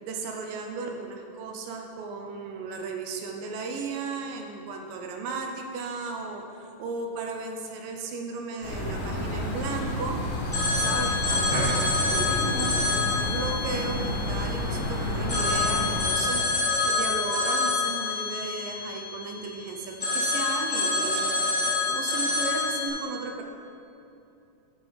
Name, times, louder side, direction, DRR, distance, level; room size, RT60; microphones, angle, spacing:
voice 1, 0.0-10.2 10.6-21.3 21.6-23.4, right 4 dB, 85° right, 3 dB, 2.5 m, -35 dB
sound 1, 8.6-16.1, left 1 dB, 50° left, 2.3 m, -30 dB
Telephone, 10.5-14.8 15.3-19.5 20.0-22.9, left 3 dB, 20° left, 2.1 m, -27 dB
13.0 x 6.1 x 4.1 m, 2.7 s
omnidirectional pair, 3.8 m